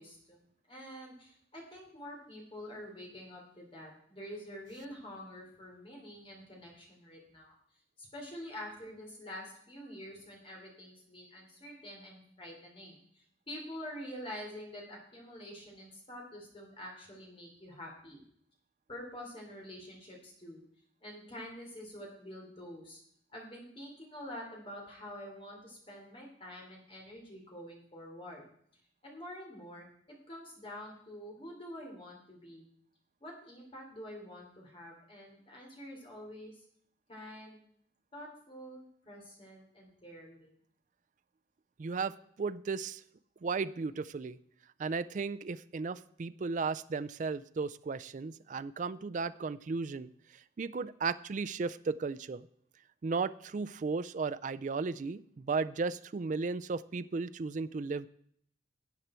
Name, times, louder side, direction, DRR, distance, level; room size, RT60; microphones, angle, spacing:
voice 1, 0.0-7.5 8.0-18.2 18.9-20.6 21.0-23.0 23.3-28.4 29.0-32.7 33.2-36.6 37.1-37.6 38.1-40.5, equal, 30° left, -1 dB, 3.3 m, -47 dB
voice 2, 41.8-43.0 43.4-44.4 44.8-52.5 53.0-58.1, right 4 dB, 40° right, 14 dB, 0.3 m, -35 dB
13.0 x 8.1 x 4.4 m, 0.64 s
head